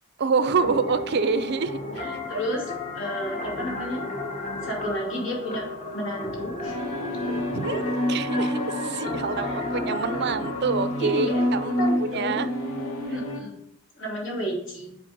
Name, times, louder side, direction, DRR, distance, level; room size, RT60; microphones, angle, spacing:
voice 1, 0.2-2.0 7.5-7.8 8.1-12.5, right 4 dB, 50° right, 12 dB, 0.5 m, -26 dB
sound 1, 0.6-11.9, left 2 dB, 35° left, 1.3 m, -34 dB
voice 2, 2.0-2.6 2.9-4.0 4.6-5.6 5.9-6.8 9.4-9.6 11.1-11.4 11.8-12.4 13.1-13.6 14.0-15.0, equal, 60° left, -1 dB, 2.7 m, -31 dB
sound 2, 6.6-13.4, equal, 85° left, 1.5 m, -29 dB
7.4 x 4.2 x 5.3 m, 0.75 s
head